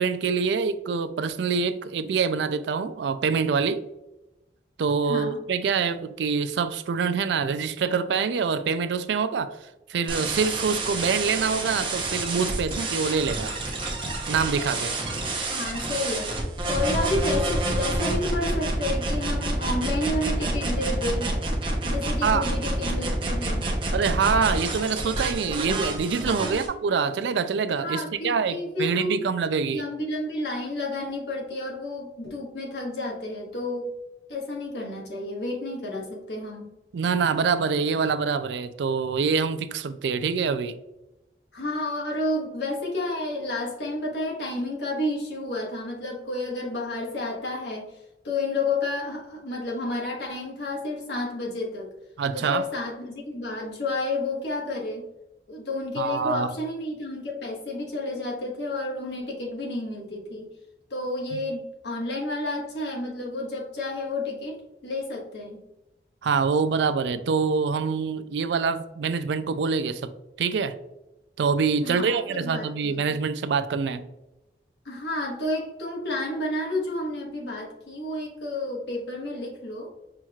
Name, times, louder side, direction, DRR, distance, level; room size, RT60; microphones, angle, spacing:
voice 1, 0.0-3.8 4.8-9.5 9.9-13.5 14.3-15.0 22.2-22.5 23.9-29.8 36.9-40.8 52.2-52.7 56.0-56.5 61.3-61.4 66.2-70.1 70.4-70.8 71.4-74.0, right 5 dB, 85° right, 0.4 m, -25 dB
voice 2, 5.1-5.4 15.5-16.3 16.6-21.3 21.8-23.7 26.3-26.7 27.8-29.2 29.7-33.9 34.3-36.7 41.5-47.9 48.2-51.9 52.3-55.1 55.5-60.5 60.9-65.6 71.8-73.2 74.8-79.9, left 2 dB, 85° left, 1.3 m, -31 dB
sound 1, 10.1-26.7, right 2 dB, 30° right, 0.8 m, -28 dB
5.7 x 3.1 x 2.3 m
head